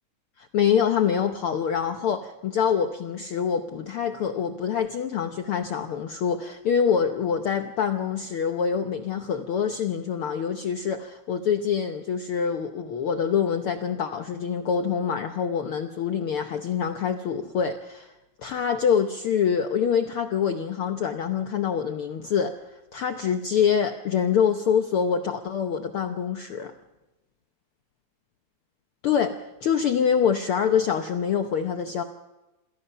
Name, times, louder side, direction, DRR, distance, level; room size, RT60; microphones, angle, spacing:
voice 1, 0.4-18.1 18.4-22.5 22.9-26.7 29.0-32.0, left 7 dB, 65° left, 6 dB, 1.4 m, -25 dB
27.0 x 17.5 x 5.6 m, 1.0 s
omnidirectional pair, 3.4 m